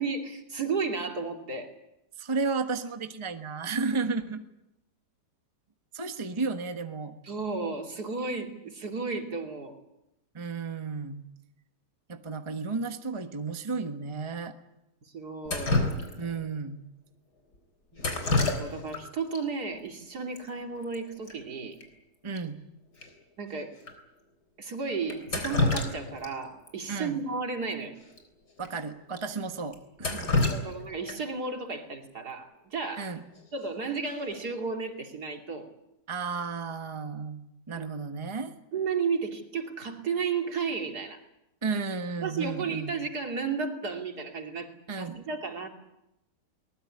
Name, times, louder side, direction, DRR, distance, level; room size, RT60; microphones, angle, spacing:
voice 1, 0.0-1.7 7.2-9.8 15.1-15.8 17.9-21.8 23.4-23.8 24.6-27.9 30.4-33.1 33.5-35.7 37.8-37.9 38.7-41.2 42.2-44.7 45.0-45.7, right 4 dB, 65° right, 4 dB, 3.2 m, -33 dB
voice 2, 2.2-4.4 5.9-7.1 10.3-11.2 12.1-14.5 16.2-16.8 22.2-22.6 26.9-27.2 28.6-30.4 33.0-33.2 36.1-38.5 41.6-43.0 44.9-45.2, right 4 dB, 20° right, 7 dB, 1.3 m, -33 dB
Drip, 15.4-16.4 18.0-19.0 19.3-19.4 20.4-20.5 20.7-21.0 21.3-21.4 21.8-21.9 22.3-22.4 23.0-23.1 23.8-23.9 25.1-26.3 26.7-26.8 28.1-28.2 28.6-28.7 29.2-29.3 29.7-31.4 33.4-33.7 34.1-34.5, left 2 dB, 70° left, 4.5 m, -28 dB
22.5 x 20.0 x 9.9 m, 0.89 s
omnidirectional pair, 1.8 m